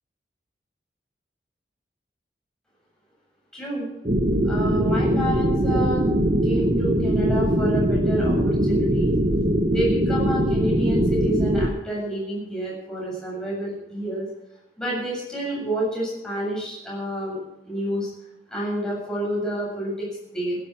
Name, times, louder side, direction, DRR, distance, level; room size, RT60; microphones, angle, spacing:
voice 1, 3.5-3.9 4.4-6.0 6.4-9.2 9.7-14.3 14.8-18.1 18.5-20.6, right 1 dB, 5° left, -5 dB, 7.6 m, -29 dB
sound 1, 4.0-11.7, equal, 40° right, 1.1 m, -21 dB
16.0 x 11.5 x 6.2 m, 0.90 s
head